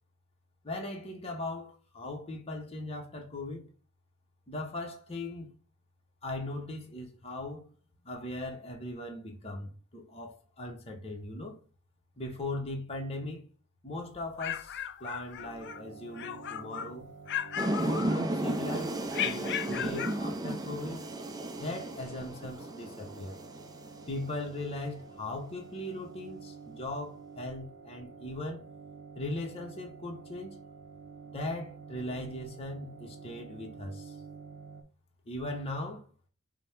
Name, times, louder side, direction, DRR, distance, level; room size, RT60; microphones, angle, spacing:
voice 1, 0.6-3.7 4.5-5.5 6.2-7.7 8.0-11.6 12.2-13.5 13.8-17.1 17.8-21.0 21.6-23.4 24.1-28.7 29.2-30.6 31.3-34.1 35.3-36.1, left 1 dB, 25° left, 0.8 m, -39 dB
sound 1, 14.1-15.8 16.1-16.9 17.3-18.5 19.1-20.2, left 10 dB, 50° left, 0.4 m, -36 dB
sound 2, 15.4-34.8, right 5 dB, 50° right, 0.7 m, -49 dB
sound 3, 17.6-24.5, right 1 dB, 15° right, 0.4 m, -34 dB
5.2 x 2.1 x 4.4 m
head